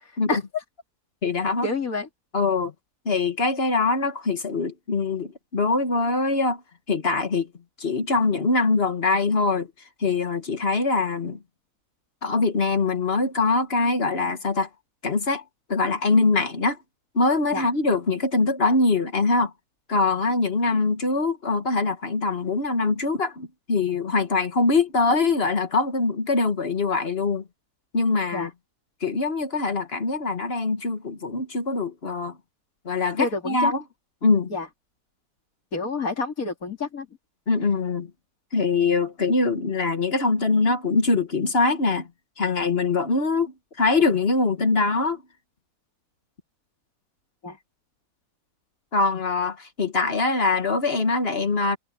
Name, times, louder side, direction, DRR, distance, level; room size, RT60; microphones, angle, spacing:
voice 1, 0.3-0.6 1.6-2.1 17.5-17.6 28.3-28.5 33.2-33.7 34.5-34.7 35.7-37.1 47.4-47.6, left 4 dB, 60° left, 3.7 m, -28 dB
voice 2, 1.2-1.7 2.3-2.7 3.0-6.6 6.9-7.5 7.8-9.7 10.0-11.4 12.2-14.7 15.0-15.4 15.7-16.8 17.1-19.5 19.9-27.4 27.9-28.5 29.0-32.4 32.8-33.8 34.2-34.5 37.5-38.1 38.5-42.1 42.4-45.2 48.9-51.8, left 3 dB, 40° left, 1.7 m, -23 dB
omnidirectional pair, 1.7 m